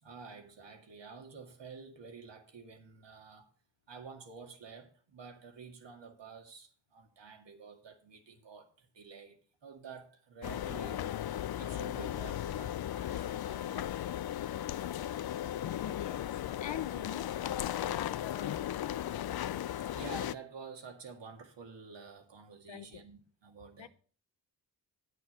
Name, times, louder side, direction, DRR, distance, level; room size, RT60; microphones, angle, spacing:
voice 1, 0.0-3.5 3.9-11.1 11.6-14.0 19.9-23.9, right 5 dB, 70° right, 2.1 m, -50 dB
sound 1, 10.4-20.3, left 11 dB, 55° left, 0.5 m, -36 dB
voice 2, 15.7-18.6 22.7-23.0 23.8-23.9, left 10 dB, 75° left, 0.9 m, -43 dB
9.1 x 6.3 x 6.9 m
cardioid pair, 65°, 45 cm